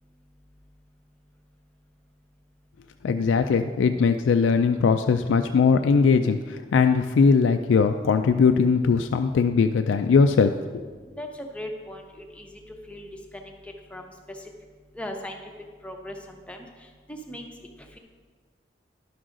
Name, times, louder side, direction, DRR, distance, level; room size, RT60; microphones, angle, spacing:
voice 1, 3.0-10.5, left 5 dB, 85° left, 7 dB, 0.3 m, -20 dB
voice 2, 11.2-12.6 12.9-14.5 15.0-15.4 15.8-17.5 17.8-18.0, left 1 dB, 5° left, 2 dB, 0.7 m, -39 dB
11.0 x 6.2 x 3.8 m, 1.5 s
head